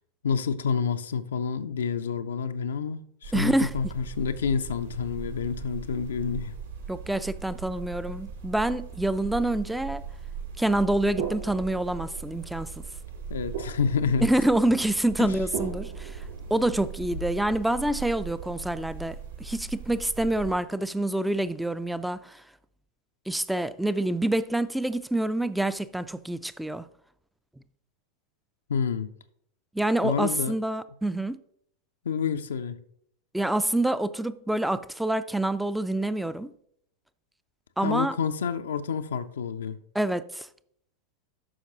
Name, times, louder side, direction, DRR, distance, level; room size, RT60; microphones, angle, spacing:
voice 1, 0.2-6.5 13.3-14.3 15.2-15.3 28.7-29.1 30.0-30.6 32.1-32.8 37.8-39.8, left 6 dB, 65° left, 0.4 m, -28 dB
sound 1, 3.2-20.5, right 6 dB, 70° right, 1.9 m, -39 dB
voice 2, 3.3-3.7 6.9-10.0 10.6-12.8 14.2-16.2 16.5-22.4 23.3-26.8 29.7-31.4 33.3-36.5 37.8-38.2 39.9-40.5, right 1 dB, 5° right, 0.4 m, -27 dB
sound 2, 11.2-17.3, right 8 dB, 55° right, 3.5 m, -40 dB
12.0 x 5.7 x 2.9 m
figure-of-eight pair, 90°, 0 cm